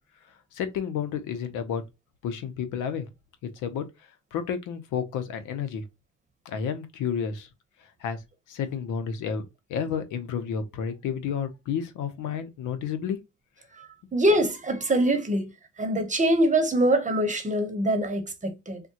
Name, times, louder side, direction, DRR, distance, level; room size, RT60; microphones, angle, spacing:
voice 1, 0.5-1.8 2.2-3.1 3.6-3.9 4.3-5.8 6.5-7.5 8.0-8.2 8.5-9.4 9.7-13.2, left 7 dB, 85° left, 0.7 m, -31 dB
voice 2, 14.1-15.5 15.8-18.8, right 1 dB, 25° right, 0.9 m, -24 dB
3.5 x 2.2 x 2.7 m
cardioid pair, 90°, 30 cm